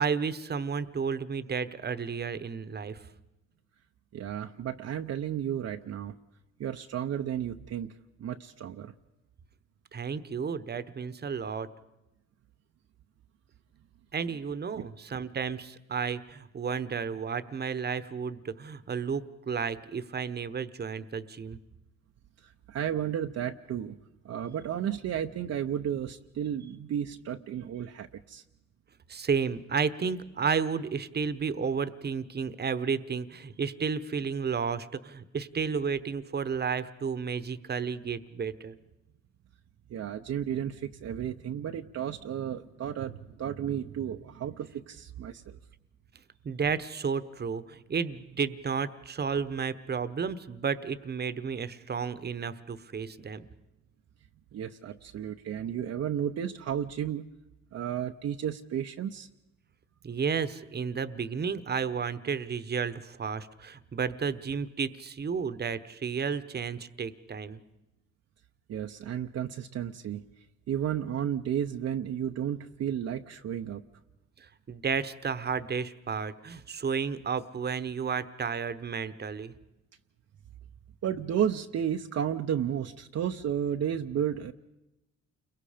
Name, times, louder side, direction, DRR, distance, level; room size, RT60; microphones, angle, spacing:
voice 1, 0.0-3.0 9.9-11.7 14.1-21.6 29.1-38.7 46.4-53.4 60.0-67.6 74.7-79.5, right 6 dB, 35° right, 13 dB, 1.0 m, -32 dB
voice 2, 4.1-6.1 6.6-8.9 14.8-14.9 22.4-24.0 24.2-28.4 39.9-45.6 54.5-57.3 57.7-59.3 68.7-70.2 70.7-73.8 81.0-84.5, right 9 dB, 55° right, 4 dB, 0.8 m, -33 dB
29.5 x 22.5 x 5.1 m, 0.95 s
cardioid pair, 90°, 30 cm